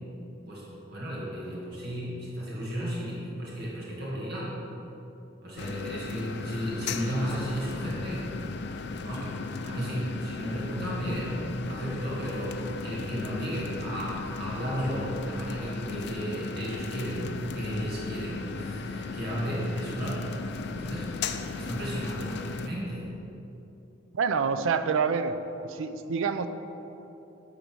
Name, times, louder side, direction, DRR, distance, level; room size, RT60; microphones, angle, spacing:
voice 1, 0.5-4.6 5.4-8.3 9.0-23.3, equal, 55° right, -6 dB, 1.9 m, -34 dB
sound 1, 5.6-22.7, left 4 dB, 60° left, 0.4 m, -36 dB
voice 2, 24.1-25.3 25.6-26.5, right 5 dB, 90° right, 10 dB, 0.4 m, -27 dB
9.2 x 4.0 x 6.1 m, 3.0 s
head